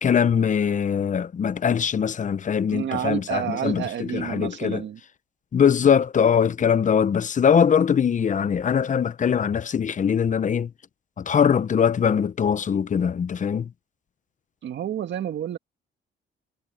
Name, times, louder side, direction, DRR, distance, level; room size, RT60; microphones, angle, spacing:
voice 1, 0.0-4.8 5.5-10.7 11.2-13.7, left 7 dB, 40° left, 0.8 m, -22 dB
voice 2, 2.7-5.0 14.6-15.6, right 10 dB, 65° right, 1.9 m, -29 dB
cardioid pair, 90°, 20 cm